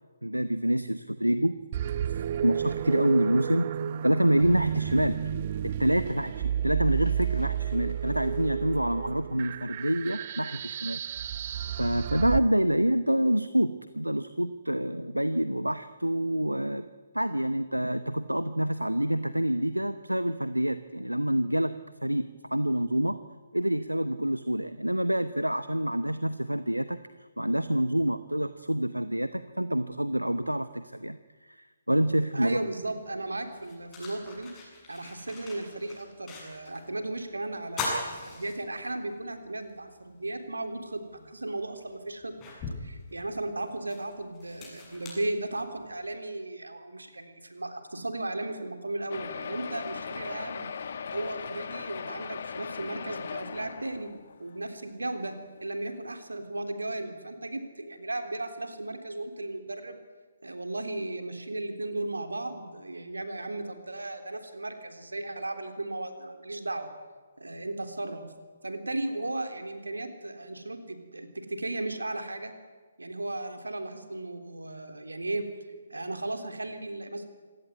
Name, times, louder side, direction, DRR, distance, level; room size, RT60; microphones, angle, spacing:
voice 1, 0.2-1.6 2.4-3.7 4.0-5.2 5.6-11.0 11.8-16.9 17.1-23.2 23.5-31.2 31.4-32.6, equal, 85° right, 12 dB, 1.0 m, -27 dB
sound 1, 1.7-12.4, right 9 dB, 35° right, 0.7 m, -31 dB
voice 2, 32.3-34.5 34.9-42.3 42.8-50.7 51.1-54.1 54.4-55.3 55.6-60.0 60.4-66.9 67.4-68.3 68.6-72.5 73.0-75.5 75.9-77.3, right 2 dB, 70° right, 6 dB, 3.5 m, -35 dB
sound 2, 32.9-33.0 33.5-36.9 37.2-37.3 37.7-39.1 39.6-39.7 41.1-41.2 41.8-46.0, left 3 dB, 15° left, 7.7 m, -39 dB
sound 3, 49.1-54.6 55.2-55.3 55.6-55.7 56.0-56.1, left 6 dB, 45° left, 1.4 m, -38 dB
26.5 x 17.5 x 9.5 m, 1.4 s
figure-of-eight pair, 135°, 0 cm